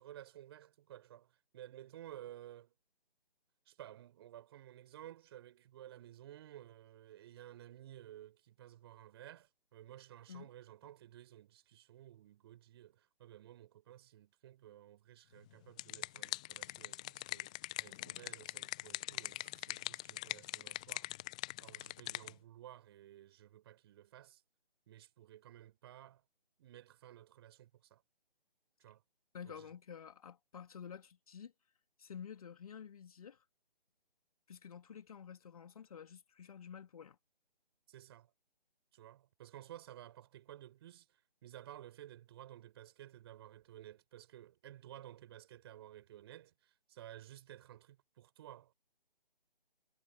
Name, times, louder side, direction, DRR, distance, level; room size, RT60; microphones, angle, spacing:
voice 1, 0.0-2.7 3.7-21.1 21.6-24.4 24.9-26.2 26.6-28.0 28.8-29.0 29.4-29.7 37.9-38.3 38.9-41.1 41.4-48.7, right 12 dB, 25° right, 4.6 m, -54 dB
sound 1, 15.5-22.3, left 18 dB, 5° left, 0.7 m, -43 dB
voice 2, 29.3-31.5 32.0-33.4 34.5-37.2, left 7 dB, 40° left, 2.6 m, -50 dB
figure-of-eight pair, 150°, 30 cm